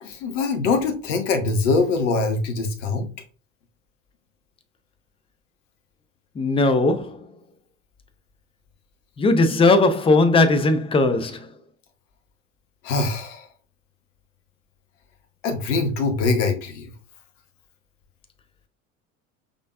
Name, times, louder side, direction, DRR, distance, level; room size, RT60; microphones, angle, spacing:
voice 1, 0.0-3.1 12.8-13.5 15.4-16.9, left 3 dB, 65° left, 1.0 m, -23 dB
voice 2, 6.4-7.2 9.2-11.5, left 2 dB, 15° left, 0.5 m, -18 dB
5.1 x 3.6 x 2.3 m
figure-of-eight pair, 70°, 40 cm